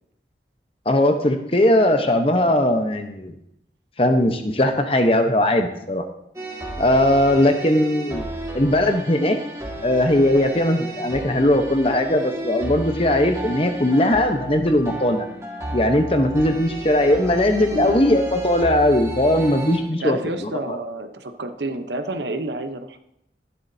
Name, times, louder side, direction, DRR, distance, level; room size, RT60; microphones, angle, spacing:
voice 1, 0.8-3.3 4.0-6.1 6.8-8.2 8.5-9.4 9.8-15.3 15.7-20.8, left 1 dB, 30° left, 6 dB, 1.0 m, -19 dB
sound 1, 6.4-19.8, right 1 dB, 15° right, 1.8 m, -33 dB
voice 2, 17.6-18.1 20.0-23.0, right 1 dB, 75° right, 8 dB, 1.0 m, -29 dB
13.5 x 11.5 x 2.8 m, 0.79 s
head